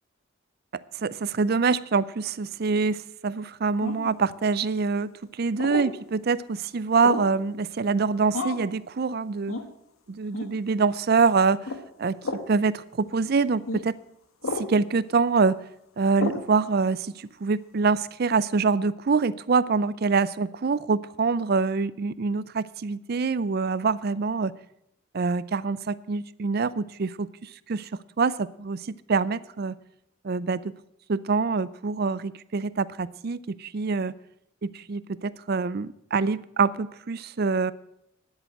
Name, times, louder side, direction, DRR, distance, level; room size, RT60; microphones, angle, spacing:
voice 1, 0.9-9.6 10.1-11.7 12.0-12.2 12.5-14.0 14.5-15.6 16.0-24.5 25.1-27.9 28.2-29.7 30.2-30.7 31.1-34.1 34.6-37.7, right 4 dB, 50° right, 18 dB, 0.4 m, -25 dB
sound 1, 3.8-4.2 5.6-5.9 7.0-7.4 8.3-8.7 9.5-9.7 10.3-10.5 11.6-11.8 12.2-12.5 13.7-13.8 14.4-14.7 16.2-16.5, left 2 dB, 90° left, 1.3 m, -31 dB
10.5 x 8.0 x 8.8 m, 0.76 s
head